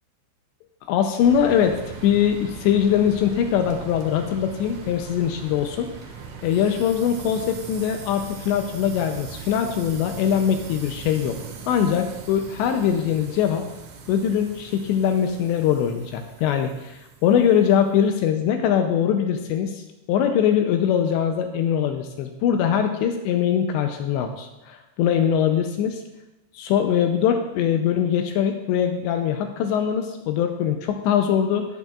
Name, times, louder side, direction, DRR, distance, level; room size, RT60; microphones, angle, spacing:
voice 1, 0.9-5.9 6.4-11.4 11.7-13.7 14.1-19.8 20.1-26.0 26.5-31.7, left 8 dB, 85° left, 5 dB, 2.5 m, -22 dB
sound 1, 1.2-18.0, right 5 dB, 65° right, 2.6 m, -40 dB
17.5 x 8.2 x 2.4 m, 0.98 s
omnidirectional pair, 5.7 m